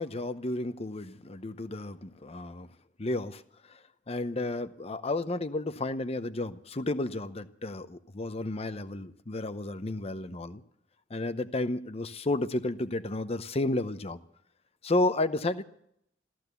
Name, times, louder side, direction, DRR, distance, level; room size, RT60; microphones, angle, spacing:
voice 1, 0.0-2.7 3.0-3.4 3.7-3.8 4.1-10.6 11.1-14.2 14.8-15.6, left 2 dB, 35° left, 0.7 m, -32 dB
14.5 x 14.0 x 6.9 m
head